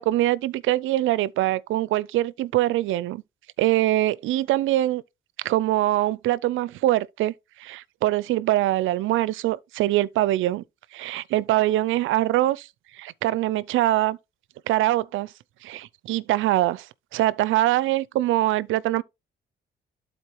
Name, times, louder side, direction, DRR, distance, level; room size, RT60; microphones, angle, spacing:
voice 1, 0.0-3.2 3.6-5.0 5.4-7.3 7.6-10.6 10.9-12.7 12.9-14.2 14.7-15.3 15.6-19.0, right 15 dB, 80° right, 0.5 m, -23 dB
12.0 x 4.2 x 3.1 m
cardioid pair, 90°, 20 cm